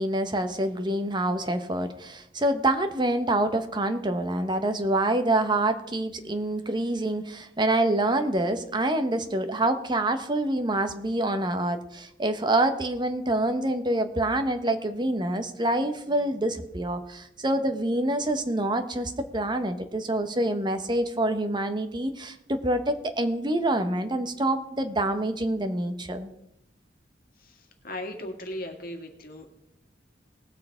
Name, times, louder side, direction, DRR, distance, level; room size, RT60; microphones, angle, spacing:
voice 1, 0.0-26.3, right 1 dB, 25° right, 8 dB, 1.1 m, -26 dB
voice 2, 27.8-29.5, left 1 dB, 55° left, 4 dB, 2.1 m, -37 dB
19.0 x 6.7 x 5.0 m, 0.78 s
head